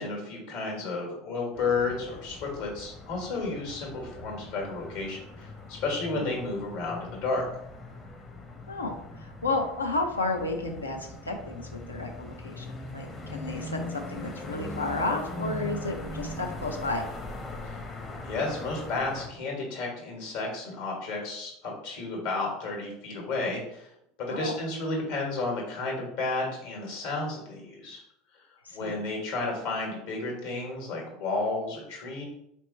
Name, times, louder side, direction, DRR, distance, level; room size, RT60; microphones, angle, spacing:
voice 1, 0.0-7.4 17.6-17.8 18.2-23.9 24.2-28.0 28.7-32.2, left 3 dB, 65° left, -1 dB, 1.5 m, -32 dB
sound 1, 1.5-19.3, left 1 dB, 30° left, 0.8 m, -40 dB
voice 2, 8.7-12.7 12.9-17.0 24.3-24.5 28.7-28.9, left 2 dB, 85° left, 3 dB, 0.6 m, -32 dB
4.2 x 3.0 x 3.2 m, 0.78 s
figure-of-eight pair, 75°, 0 cm